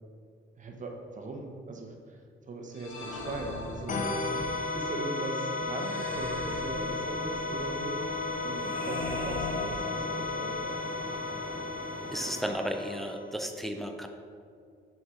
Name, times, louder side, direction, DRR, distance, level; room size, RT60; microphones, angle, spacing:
voice 1, 0.6-2.2 2.5-8.0 8.4-10.8, right 2 dB, 40° right, 2 dB, 0.9 m, -39 dB
sound 1, 2.7-4.4 5.7-7.4 8.6-10.5, left 2 dB, 90° left, 1.4 m, -40 dB
sound 2, 3.9-13.3, left 3 dB, 40° left, 0.8 m, -34 dB
sound 3, 6.5-12.5, left 1 dB, 25° left, 1.3 m, -44 dB
voice 2, 12.1-14.1, equal, ahead, 5 dB, 0.5 m, -34 dB
5.9 x 3.7 x 4.7 m, 2.2 s
cardioid pair, 90°, 20 cm